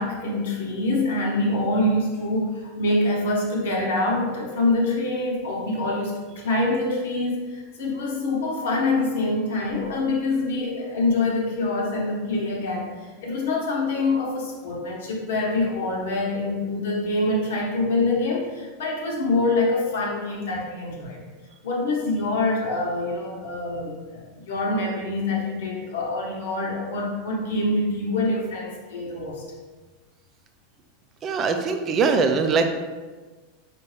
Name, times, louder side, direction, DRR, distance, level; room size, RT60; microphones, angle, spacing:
voice 1, 0.0-21.2 21.6-29.4, left 2 dB, 80° left, -1 dB, 1.0 m, -25 dB
voice 2, 31.2-32.7, right 4 dB, 30° right, 6 dB, 0.4 m, -21 dB
4.4 x 2.5 x 3.2 m, 1.3 s
supercardioid pair, 125°, 0 cm